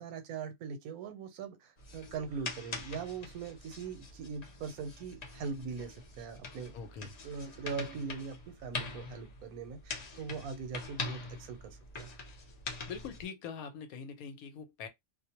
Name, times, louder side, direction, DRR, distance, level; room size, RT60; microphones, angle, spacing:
voice 1, 0.0-6.7 7.0-12.1, right 5 dB, 80° right, 1.1 m, -41 dB
sound 1, 1.8-13.2, left 3 dB, 55° left, 0.4 m, -44 dB
voice 2, 6.7-7.2 12.9-14.9, left 6 dB, 80° left, 1.1 m, -43 dB
2.5 x 2.0 x 2.8 m
omnidirectional pair, 1.5 m